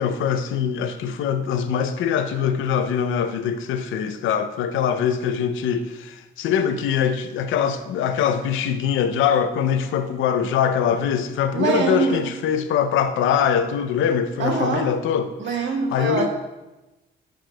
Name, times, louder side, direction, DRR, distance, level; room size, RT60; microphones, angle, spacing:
voice 1, 0.0-15.6 15.9-16.3, left 8 dB, 80° left, 9 dB, 0.5 m, -23 dB
voice 2, 11.5-12.3 14.4-14.9 15.4-16.3, right 5 dB, 65° right, 2 dB, 1.2 m, -24 dB
9.9 x 5.9 x 2.2 m, 1.1 s
cardioid pair, 90°, 20 cm